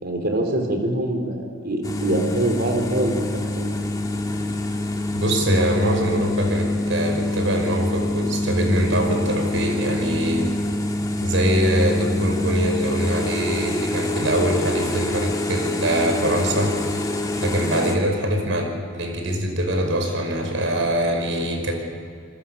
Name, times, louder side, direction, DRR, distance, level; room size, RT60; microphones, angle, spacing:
voice 1, 0.0-3.3 3.6-3.7, right 1 dB, 55° right, 3 dB, 4.3 m, -24 dB
sound 1, 1.8-18.0, left 1 dB, 20° left, 2.0 m, -26 dB
voice 2, 5.1-10.5 11.2-17.1 17.3-21.7, right 1 dB, 75° right, 3 dB, 5.6 m, -23 dB
29.5 x 21.0 x 7.1 m, 2.4 s
head